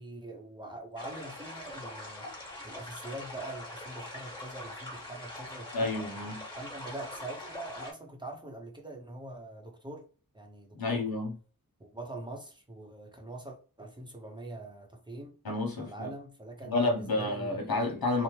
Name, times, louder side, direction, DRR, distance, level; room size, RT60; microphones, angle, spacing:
voice 1, 0.0-2.3 2.6-5.9 6.6-10.0 10.3-11.1 11.8-15.4 15.8-17.9, right 2 dB, 15° right, 0.7 m, -43 dB
sound 1, 1.0-7.9, left 1 dB, 10° left, 1.3 m, -43 dB
voice 2, 5.7-6.4 10.8-11.3 15.4-16.1 16.6-18.2, left 2 dB, 85° left, 1.0 m, -30 dB
2.8 x 2.1 x 3.1 m
wide cardioid pair, 80°, 36 cm